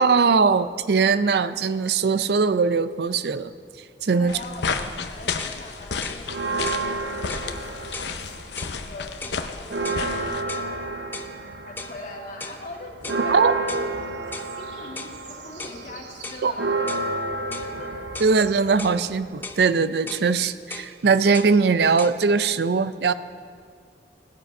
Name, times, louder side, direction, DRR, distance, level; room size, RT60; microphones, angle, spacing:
voice 1, 0.0-3.5 4.0-4.3 13.3-13.9 16.4-16.5 18.2-23.1, right 5 dB, 65° right, 14 dB, 0.4 m, -21 dB
voice 2, 4.1-4.8 5.1-6.9 7.2-7.8 8.8-11.2 11.7-13.6 14.2-17.9, left 2 dB, 45° left, -3 dB, 1.9 m, -42 dB
sound 1, 4.3-10.4, left 5 dB, 75° left, 0.7 m, -32 dB
sound 2, 5.4-5.6 6.0-6.2 6.7-6.9 7.3-7.5 7.9-8.1 8.6-8.8 9.2-9.4 9.8-10.1 10.5-10.7 11.1-11.3 11.8-12.0 12.4-12.6 13.0-13.3 13.7-13.9 14.3-14.5 15.0-15.2 15.6-15.8 16.2-16.4 16.9-17.1 17.5-17.7 18.2-18.4 18.8-19.0 19.4-19.6 20.1-20.3 20.7-20.9 21.3-21.6 22.0-22.1, left 3 dB, 10° left, 0.5 m, -37 dB
sound 3, 6.3-8.7 9.0-19.5, right 2 dB, 85° right, 0.9 m, -31 dB
18.5 x 7.6 x 5.3 m, 2.1 s
head